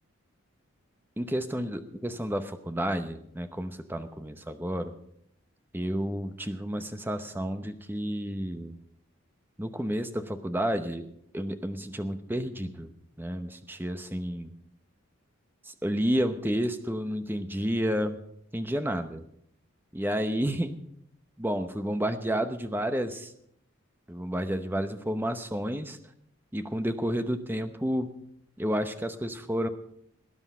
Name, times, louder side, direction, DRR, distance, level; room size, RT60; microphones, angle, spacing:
voice 1, 1.2-4.9 5.7-8.8 9.6-11.1 11.3-12.9 13.2-14.5 15.7-18.2 18.5-19.2 19.9-20.7 21.4-23.3 24.1-26.0 26.5-28.1 28.6-29.7, equal, 10° right, 8 dB, 0.9 m, -30 dB
19.0 x 9.8 x 5.5 m, 0.71 s
head